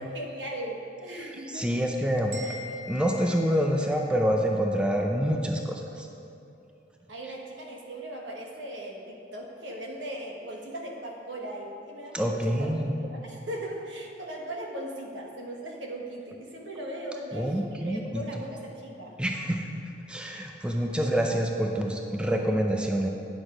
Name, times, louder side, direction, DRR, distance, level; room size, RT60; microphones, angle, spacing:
voice 1, 0.0-1.8 2.4-2.6 7.1-12.8 13.1-19.2, right 1 dB, 75° right, 0 dB, 1.2 m, -38 dB
voice 2, 1.5-2.4 2.9-6.1 12.1-13.0 17.3-18.2 19.2-19.7 20.1-23.1, equal, 5° right, 1 dB, 0.4 m, -27 dB
sound 1, 2.3-4.3, left 2 dB, 60° right, 2.0 m, -43 dB
9.7 x 6.2 x 5.0 m, 2.7 s
head